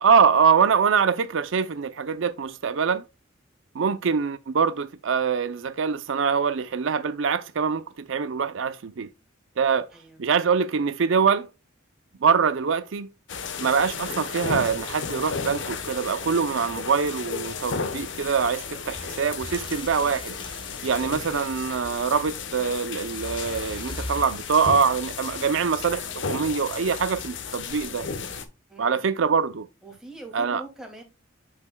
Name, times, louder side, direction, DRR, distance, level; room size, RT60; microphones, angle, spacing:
voice 1, 0.0-3.0 3.7-9.1 9.6-9.9 10.2-11.5 12.2-13.1 13.6-20.3 20.8-28.1 28.8-29.7 30.3-30.6, right 6 dB, 70° right, 0.5 m, -24 dB
voice 2, 9.9-10.2 28.7-29.0 29.8-31.0, right 2 dB, 5° right, 2.4 m, -43 dB
sound 1, 13.3-28.4, left 5 dB, 65° left, 1.0 m, -34 dB
sound 2, 18.3-24.9, left 2 dB, 25° left, 1.6 m, -41 dB
8.7 x 6.4 x 2.2 m
head